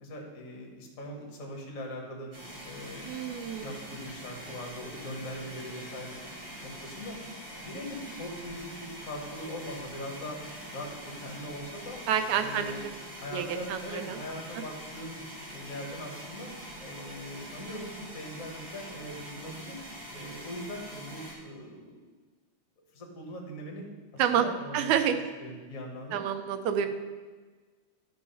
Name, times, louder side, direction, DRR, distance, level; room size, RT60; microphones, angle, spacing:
voice 1, 0.0-2.3 2.6-3.2 3.6-6.2 6.6-7.2 7.5-10.4 10.7-12.0 12.4-12.8 13.2-15.2 15.5-16.5 16.8-19.8 20.1-22.0 22.9-23.9 24.1-25.1 25.4-26.3, left 1 dB, 35° left, 0 dB, 1.4 m, -41 dB
sound 1, 2.3-21.3, equal, 50° right, 4.1 m, -44 dB
voice 2, 3.0-3.8 12.1-12.7 13.3-14.2 24.2-24.5 24.7-25.2 26.1-26.9, right 9 dB, 80° right, 7 dB, 2.0 m, -28 dB
11.5 x 4.6 x 5.6 m, 1.4 s
omnidirectional pair, 3.5 m